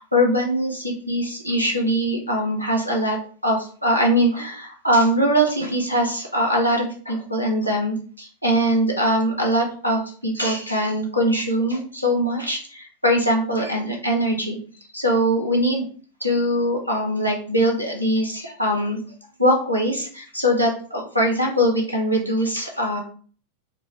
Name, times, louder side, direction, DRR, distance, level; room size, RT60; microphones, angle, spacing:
voice 1, 0.1-3.2 3.4-14.6 14.9-15.8 16.2-19.0 19.4-23.0, equal, 90° left, -1 dB, 0.8 m, -22 dB
2.7 x 2.5 x 2.9 m, 0.43 s
figure-of-eight pair, 90°, 0 cm